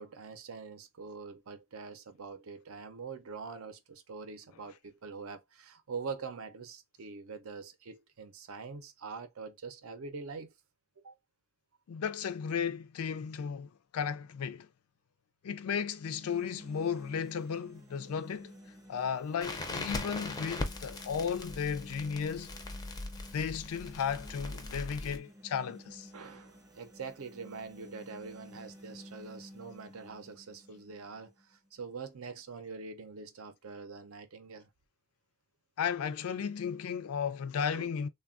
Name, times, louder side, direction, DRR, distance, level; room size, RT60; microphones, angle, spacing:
voice 1, 0.0-10.5 11.0-11.1 24.4-24.6 26.1-34.7 37.7-38.0, right 5 dB, 70° right, 0.6 m, -44 dB
voice 2, 11.9-14.7 15.4-18.5 18.9-22.5 23.3-26.1 35.8-38.1, left 7 dB, 85° left, 0.4 m, -34 dB
sound 1, 15.9-31.9, equal, 15° right, 0.7 m, -53 dB
Crackle, 19.4-25.2, left 2 dB, 20° left, 0.4 m, -40 dB
3.3 x 2.2 x 2.4 m
head